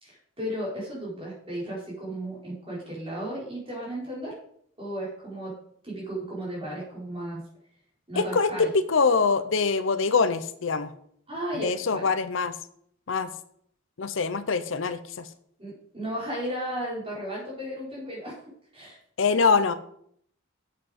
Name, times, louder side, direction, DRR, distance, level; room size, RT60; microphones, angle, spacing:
voice 1, 0.0-4.4 4.8-5.6 5.8-7.4 8.1-8.7 11.3-12.1 15.6-18.4 18.7-19.0, right 1 dB, 25° right, -6 dB, 4.6 m, -34 dB
voice 2, 8.2-10.9 11.6-12.5 13.1-13.3 14.0-15.3 19.2-19.8, left 4 dB, 70° left, 13 dB, 0.6 m, -24 dB
8.3 x 7.6 x 5.2 m, 0.67 s
head